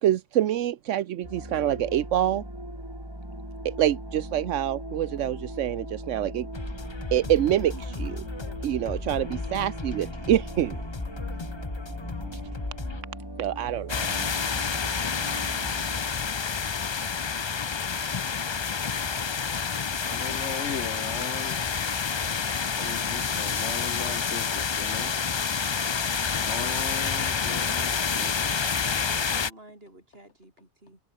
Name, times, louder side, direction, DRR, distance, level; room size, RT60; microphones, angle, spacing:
voice 1, 0.0-2.4 3.6-6.5 7.1-7.7 8.0-8.1 8.6-10.8 13.4-14.1, right 11 dB, 80° right, 1.1 m, -26 dB
sound 1, 1.2-16.1, right 1 dB, 20° right, 6.4 m, -39 dB
sound 2, 6.5-13.0, left 3 dB, 25° left, 1.0 m, -36 dB
voice 2, 7.7-8.1 8.4-10.3 10.8-11.1 28.9-31.0, right 1 dB, 50° right, 6.9 m, -51 dB
sound 3, 13.9-29.5, left 6 dB, 45° left, 0.3 m, -28 dB
voice 3, 20.0-21.6 22.7-25.1 26.4-28.7, left 6 dB, 65° left, 1.6 m, -38 dB
omnidirectional pair, 1.3 m